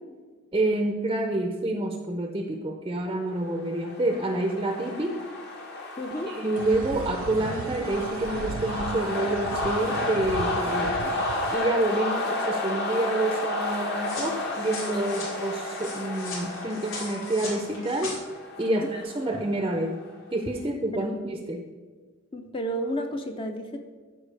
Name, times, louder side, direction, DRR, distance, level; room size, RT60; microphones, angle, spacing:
voice 1, 0.5-5.2 6.3-11.0 11.5-18.1 18.6-20.0 20.3-21.6, right 2 dB, 20° right, 4 dB, 0.5 m, -28 dB
sound 1, 3.5-20.1, left 2 dB, 50° left, 1.2 m, -32 dB
voice 2, 6.0-6.4 14.9-15.0 18.7-18.9 20.9-21.1 22.3-23.8, equal, 25° left, 4 dB, 0.5 m, -32 dB
sound 2, 6.6-11.6, right 5 dB, 75° right, 0.4 m, -37 dB
sound 3, 14.0-18.2, left 3 dB, 70° left, 2.4 m, -39 dB
13.0 x 4.7 x 3.3 m, 1.4 s
head